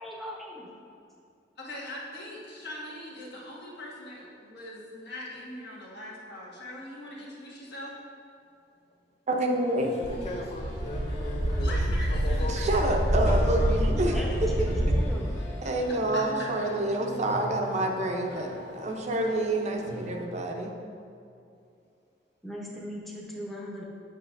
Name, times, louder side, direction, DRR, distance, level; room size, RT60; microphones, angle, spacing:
voice 1, 0.0-0.7 13.9-15.4 22.4-23.8, equal, ahead, -3 dB, 0.8 m, -39 dB
voice 2, 1.6-7.9 11.6-12.8 13.2-13.4 14.3-14.6 15.9-16.5, left 1 dB, 65° left, -5 dB, 1.4 m, -41 dB
voice 3, 9.3-9.9 12.5-14.1 14.6-15.0 15.6-18.5 18.7-20.7, right 1 dB, 40° right, 2 dB, 0.6 m, -28 dB
sound 1, 9.6-20.2, left 1 dB, 80° left, 1.0 m, -42 dB
voice 4, 10.0-12.7 13.1-13.8, left 2 dB, 35° left, 2 dB, 0.3 m, -38 dB
sound 2, 10.0-15.1, equal, 85° right, 0.8 m, -26 dB
8.0 x 5.9 x 2.5 m, 2.5 s
head